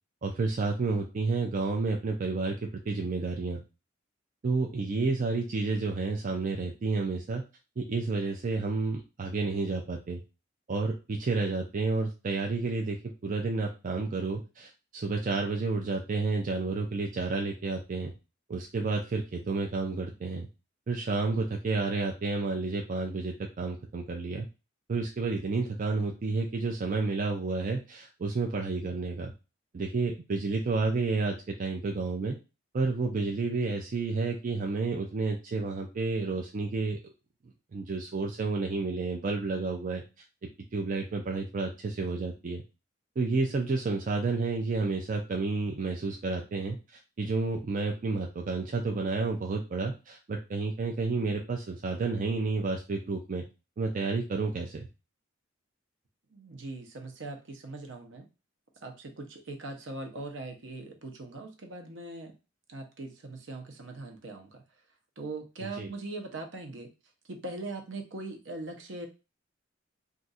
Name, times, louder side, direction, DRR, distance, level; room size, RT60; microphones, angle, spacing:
voice 1, 0.2-3.6 4.4-7.4 7.8-10.2 10.7-13.0 13.2-18.1 18.5-20.5 20.9-24.5 24.9-29.3 29.7-32.4 32.7-37.1 37.7-40.0 40.7-42.6 43.2-53.4 53.8-54.9 65.8-65.9, right 3 dB, 40° right, 1 dB, 0.4 m, -30 dB
voice 2, 56.3-58.3 58.8-62.4 62.7-64.6 65.2-66.9 67.3-69.1, right 2 dB, 65° right, 4 dB, 0.7 m, -40 dB
2.5 x 2.4 x 4.0 m, 0.30 s
head